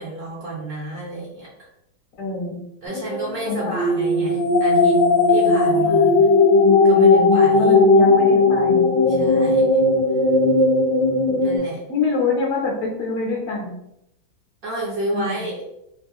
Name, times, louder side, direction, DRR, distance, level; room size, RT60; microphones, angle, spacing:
voice 1, 0.0-1.5 2.8-5.0 5.3-6.2 6.8-7.8 9.1-9.7 11.4-11.8 14.6-15.7, right 2 dB, 60° right, -5 dB, 1.0 m, -30 dB
voice 2, 2.2-2.6 3.4-3.7 5.7-6.0 6.8-7.3 7.6-9.5 11.9-13.7 15.1-15.4, left 4 dB, 55° left, -2 dB, 1.0 m, -26 dB
sound 1, 2.9-11.6, left 3 dB, 70° left, 1.4 m, -16 dB
3.2 x 2.2 x 3.5 m, 0.80 s
omnidirectional pair, 2.1 m